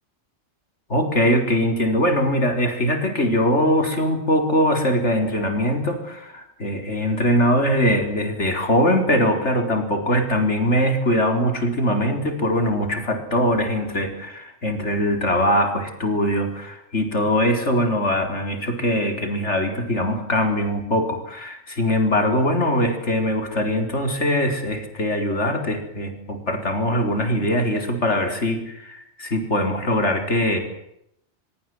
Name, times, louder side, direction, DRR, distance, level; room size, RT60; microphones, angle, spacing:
voice 1, 0.9-30.6, equal, 80° left, 5 dB, 4.7 m, -22 dB
24.5 x 22.5 x 7.9 m, 0.76 s
omnidirectional pair, 1.2 m